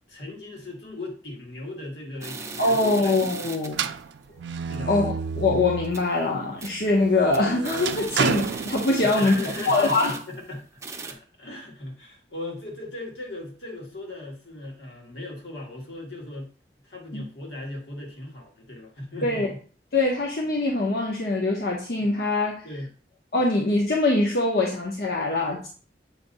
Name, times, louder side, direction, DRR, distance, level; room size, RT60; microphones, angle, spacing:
voice 1, 0.1-3.1 3.4-3.5 4.7-5.0 8.2-8.3 9.0-16.5 16.8-19.6 22.6-22.9, left 1 dB, 80° left, -1 dB, 2.0 m, -37 dB
sound 1, 2.2-3.8 4.2-4.3 4.7-4.8 5.2-5.4 5.7-6.2 6.6-6.9 7.2-10.5 10.8-11.1, right 4 dB, 15° right, 0.5 m, -38 dB
voice 2, 2.6-3.9 4.9-9.4 9.7-10.1 17.1-17.2 19.2-19.5 19.9-22.7 23.3-25.7, left 2 dB, 60° left, -1 dB, 0.8 m, -23 dB
metal door, 3.7-6.1 6.6-9.4, right 6 dB, 80° right, 0.4 m, -31 dB
7.4 x 2.7 x 5.4 m, 0.41 s
head